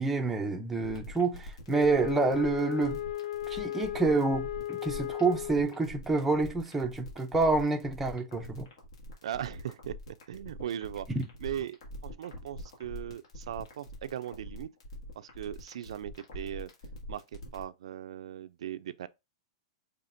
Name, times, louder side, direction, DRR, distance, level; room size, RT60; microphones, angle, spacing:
voice 1, 0.0-3.0 3.5-8.7 11.1-11.2, right 3 dB, 5° right, 0.5 m, -28 dB
sound 1, 0.8-17.6, equal, 70° left, 2.2 m, -44 dB
Wind instrument woodwind instrument, 1.7-5.9, left 13 dB, 90° left, 0.4 m, -36 dB
voice 2, 9.2-11.1 11.4-14.7 15.2-16.7 17.1-17.2 17.5-19.1, right 10 dB, 80° right, 0.4 m, -38 dB
5.6 x 3.4 x 2.5 m
supercardioid pair, 175°, 3 cm